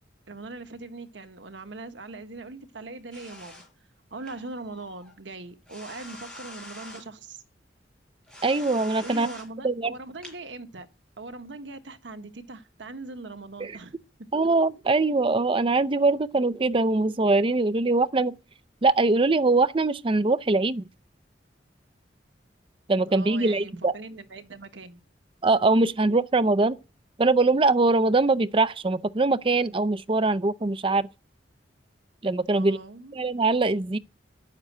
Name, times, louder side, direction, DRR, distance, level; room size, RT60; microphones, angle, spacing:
voice 1, 0.3-3.6 4.1-7.4 9.0-10.9 11.2-13.9 14.2-14.3 23.1-25.0 32.5-33.2, right 3 dB, 80° right, 1.2 m, -41 dB
sound 1, 3.1-3.7 4.2-5.1 5.7-7.0 8.3-9.5 10.2-10.3, left 1 dB, 5° left, 5.7 m, -45 dB
voice 2, 8.4-9.3 9.6-9.9 13.6-13.7 14.3-18.3 18.8-20.8 22.9-23.9 25.4-26.8 27.2-31.1 32.2-32.8 33.1-34.0, right 3 dB, 30° right, 0.5 m, -22 dB
9.8 x 7.4 x 9.1 m
head